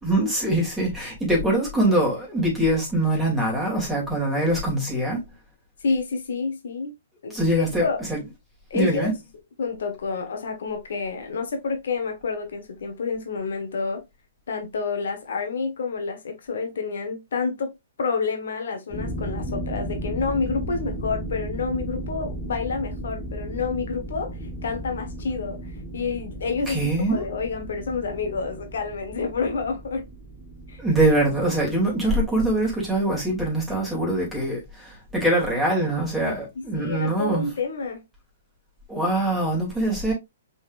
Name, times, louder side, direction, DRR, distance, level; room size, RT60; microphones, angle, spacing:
voice 1, 0.0-5.2 7.3-8.2 8.7-9.1 26.7-27.3 30.8-37.5 38.9-40.1, right 1 dB, ahead, 2.6 m, -23 dB
voice 2, 5.8-6.9 7.2-8.0 8.7-9.1 9.6-14.0 14.5-17.7 18.0-24.4 24.6-30.0 30.7-30.8 36.7-38.0, left 4 dB, 70° left, 1.2 m, -29 dB
sound 1, 18.9-34.7, right 1 dB, 15° left, 1.5 m, -35 dB
5.0 x 3.9 x 2.5 m
hypercardioid pair, 140°, 0 cm